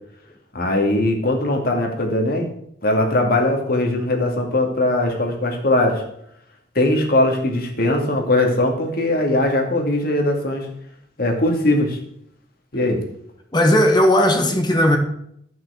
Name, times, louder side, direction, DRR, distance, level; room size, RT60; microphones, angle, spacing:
voice 1, 0.5-2.5 2.8-6.0 6.7-10.7 11.2-12.0 12.7-13.0, left 1 dB, 55° left, 2.3 m, -20 dB
voice 2, 13.5-15.0, left 1 dB, 25° left, 1.4 m, -16 dB
13.0 x 6.1 x 6.4 m
head